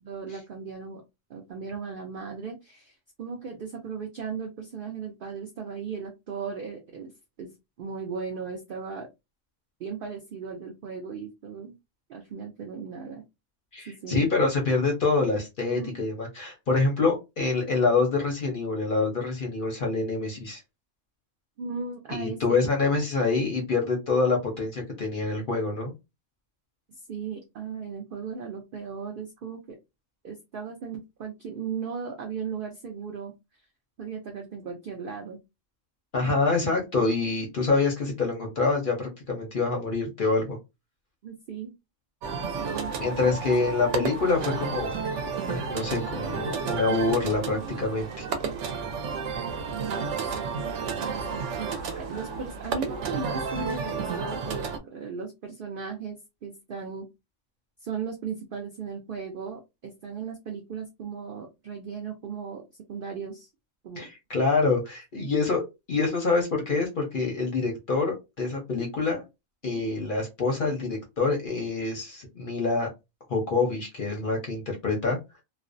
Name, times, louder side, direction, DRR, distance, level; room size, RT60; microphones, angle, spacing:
voice 1, 0.0-1.0 1.3-7.1 7.4-9.1 9.8-11.7 12.1-13.2 13.9-14.3 15.7-15.9 21.6-22.6 27.1-29.8 30.2-33.3 34.0-35.4 36.1-36.4 41.2-41.7 42.6-43.3 43.7-43.8 49.7-50.7 51.0-57.1 57.8-62.6 62.9-63.5 63.8-64.1 65.1-65.3 69.6-70.0, right 6 dB, 90° right, 2 dB, 0.4 m, -37 dB
voice 2, 13.7-20.6 22.1-25.9 36.1-40.6 43.0-44.9 45.5-48.3 64.0-69.2 69.6-72.9 73.3-75.2, left 3 dB, 55° left, 1 dB, 0.6 m, -26 dB
sound 1, 42.2-54.8, right 5 dB, 65° right, 0.8 m, -32 dB
2.5 x 2.0 x 2.5 m, 0.23 s
omnidirectional pair, 1.5 m